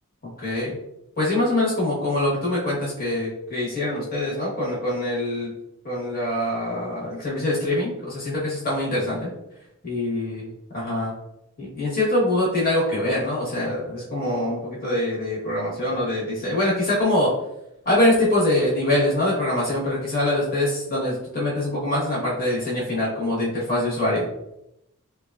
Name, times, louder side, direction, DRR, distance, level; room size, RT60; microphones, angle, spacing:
voice 1, 0.4-0.8 1.2-5.5 5.8-9.3 9.8-10.4 10.7-11.1 11.6-17.3 17.8-24.3, left 1 dB, 40° left, -6 dB, 1.0 m, -24 dB
3.1 x 2.3 x 2.2 m, 0.83 s
head